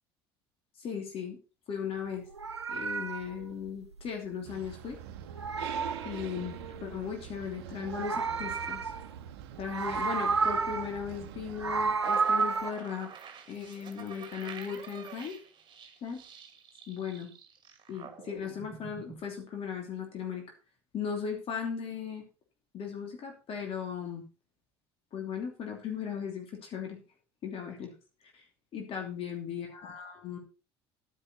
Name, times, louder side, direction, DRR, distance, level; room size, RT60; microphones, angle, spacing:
voice 1, 0.8-1.4 1.7-2.2 2.7-4.9 6.0-8.9 9.6-13.1 13.5-15.3 16.0-16.2 16.9-17.3 17.9-20.4 20.9-22.2 22.7-24.2 25.1-27.0 27.4-27.9 28.3-28.4 28.7-30.4, left 7 dB, 45° left, 3 dB, 2.9 m, -37 dB
Meow, 2.2-4.9 5.1-6.8 7.7-9.3 9.6-11.0 11.4-12.7, right 5 dB, 85° right, 0.7 m, -32 dB
sound 1, 4.4-12.0, right 11 dB, 65° right, 1.0 m, -44 dB
sound 2, 12.0-19.2, right 7 dB, 35° right, 2.2 m, -47 dB
11.0 x 9.9 x 4.3 m, 0.32 s
figure-of-eight pair, 60°, 14 cm